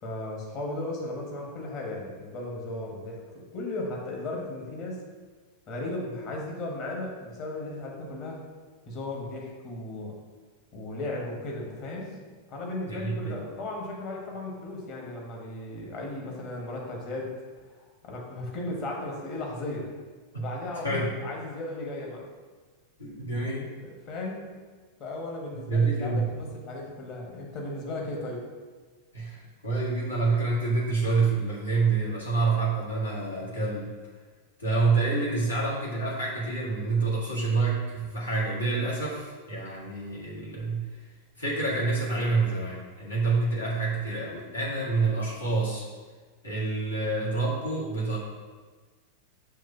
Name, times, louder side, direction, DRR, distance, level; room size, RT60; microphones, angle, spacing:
voice 1, 0.0-5.0 5.7-8.4 8.9-10.2 10.7-12.2 12.5-17.4 17.6-19.9 20.4-22.3 23.8-24.6 25.0-28.5, left 2 dB, 40° left, -1 dB, 1.4 m, -36 dB
voice 2, 12.9-13.4 20.3-20.5 20.8-21.1 23.0-23.7 25.7-26.3 29.1-33.9 34.6-40.9 41.4-45.9 46.4-48.2, right 3 dB, 75° left, -6 dB, 1.9 m, -27 dB
6.5 x 3.1 x 5.8 m, 1.4 s
figure-of-eight pair, 90°, 0 cm